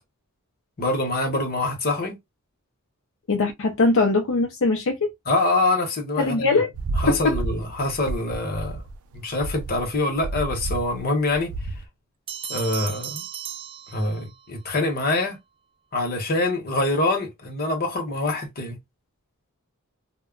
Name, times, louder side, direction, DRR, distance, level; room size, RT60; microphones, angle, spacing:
voice 1, 0.8-2.2 5.3-6.6 7.0-8.8 9.1-11.5 12.5-13.2 13.9-15.4 15.9-18.8, left 2 dB, 45° left, 0.9 m, -25 dB
voice 2, 3.3-5.1 6.2-6.7 7.1-7.3, left 3 dB, 65° left, 0.5 m, -21 dB
sound 1, 6.7-11.8, right 2 dB, 85° right, 0.4 m, -31 dB
sound 2, 12.3-14.5, right 9 dB, 25° right, 0.4 m, -35 dB
2.2 x 2.0 x 3.6 m
head